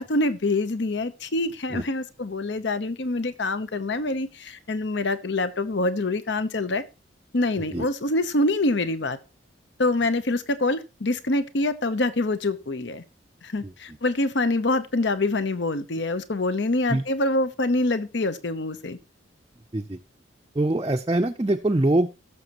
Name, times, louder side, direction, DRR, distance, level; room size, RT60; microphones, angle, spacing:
voice 1, 0.0-6.8 7.3-9.2 9.8-13.0 13.4-19.0, left 2 dB, 65° left, 13 dB, 0.9 m, -25 dB
voice 2, 20.6-22.1, right 1 dB, 20° right, 2 dB, 0.5 m, -23 dB
18.0 x 6.8 x 3.0 m, 0.29 s
head